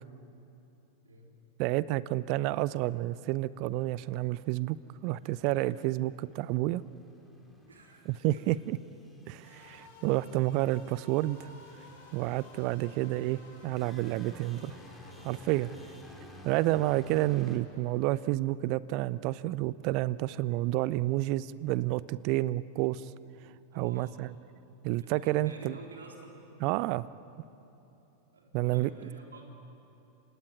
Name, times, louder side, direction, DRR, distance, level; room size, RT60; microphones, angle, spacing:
voice 1, 0.9-1.4 7.6-8.5 9.1-9.2 15.6-16.0 16.2-16.4 23.7-24.2 25.0-26.4 28.3-29.4, right 2 dB, 70° right, 1 dB, 3.8 m, -51 dB
voice 2, 1.6-4.8 5.0-6.8 8.1-8.8 9.3-11.5 12.1-14.7 15.2-15.7 16.4-23.0 23.7-24.3 24.8-25.7 26.6-27.1 28.5-28.9, right 17 dB, 45° right, 19 dB, 0.5 m, -30 dB
sound 1, 5.2-17.6, left 1 dB, ahead, 3.8 m, -55 dB
sound 2, 9.4-18.2, left 3 dB, 55° left, 6.7 m, -56 dB
27.5 x 17.5 x 9.5 m, 2.9 s
figure-of-eight pair, 90°, 0 cm